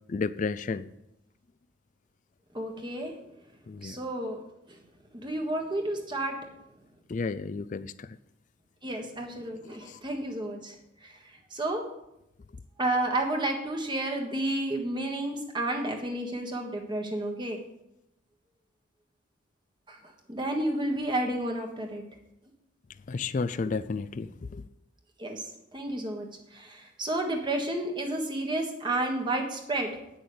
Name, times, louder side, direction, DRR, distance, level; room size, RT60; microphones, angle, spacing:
voice 1, 0.1-0.9 3.7-4.0 7.1-8.2 9.8-10.0 23.1-24.6, left 4 dB, 40° left, 15 dB, 0.3 m, -32 dB
voice 2, 2.5-3.1 3.8-4.4 4.7-4.8 5.1-6.4 8.8-10.7 11.0-11.1 11.5-11.8 12.8-17.6 19.9-20.0 20.3-22.0 25.2-29.9, right 1 dB, 20° right, 2 dB, 1.5 m, -31 dB
9.2 x 6.3 x 8.4 m, 0.84 s
head